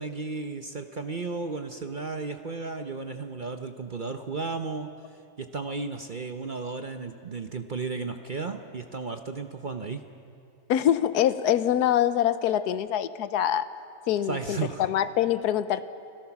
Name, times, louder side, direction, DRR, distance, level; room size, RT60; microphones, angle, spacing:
voice 1, 0.0-4.9 5.4-10.0 14.3-14.9, right 4 dB, 40° right, 7 dB, 0.7 m, -34 dB
voice 2, 10.7-13.7 14.1-15.9, left 11 dB, 85° left, 14 dB, 1.3 m, -24 dB
29.5 x 17.5 x 6.0 m, 2.5 s
omnidirectional pair, 1.7 m